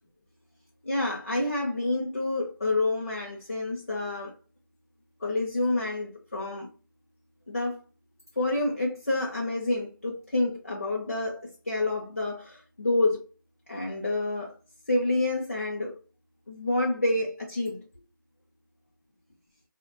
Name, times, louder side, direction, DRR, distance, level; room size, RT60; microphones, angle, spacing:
voice 1, 0.8-4.3 5.2-6.7 7.5-7.8 8.4-13.2 13.7-14.5 14.9-15.9 16.5-17.8, left 2 dB, 40° left, 0.5 m, -28 dB
2.9 x 2.1 x 2.8 m
figure-of-eight pair, 175°, 11 cm